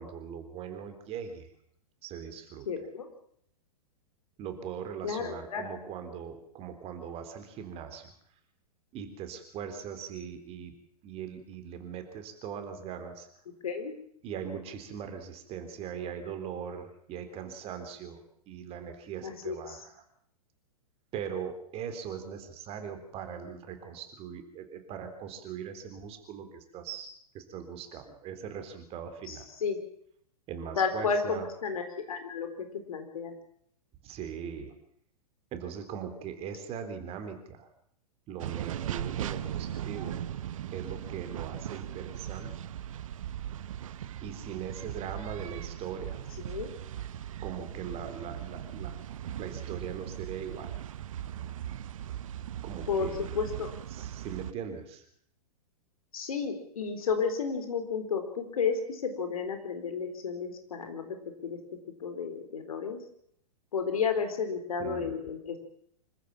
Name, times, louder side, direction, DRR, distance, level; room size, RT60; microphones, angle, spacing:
voice 1, 0.0-1.5 2.0-2.7 4.4-8.1 8.9-10.7 11.0-13.3 14.2-20.0 21.1-29.5 30.5-31.5 34.0-34.7 35.5-37.7 38.3-40.2 40.7-42.7 44.2-46.2 47.4-49.0 49.4-50.8 52.6-53.2 53.9-55.1 64.8-65.2, right 7 dB, 30° right, 7 dB, 3.8 m, -40 dB
voice 2, 2.7-3.1 5.0-5.8 13.6-13.9 19.2-19.8 29.3-29.8 30.8-32.5 32.9-33.3 46.5-46.7 52.9-53.1 53.3-53.7 56.1-61.2 61.4-61.6 62.0-63.0 63.7-65.6, left 5 dB, 65° left, 7 dB, 4.1 m, -32 dB
sound 1, 38.4-54.5, right 10 dB, 60° right, 0.9 m, -38 dB
26.0 x 14.5 x 7.4 m, 0.67 s
figure-of-eight pair, 105°, 20 cm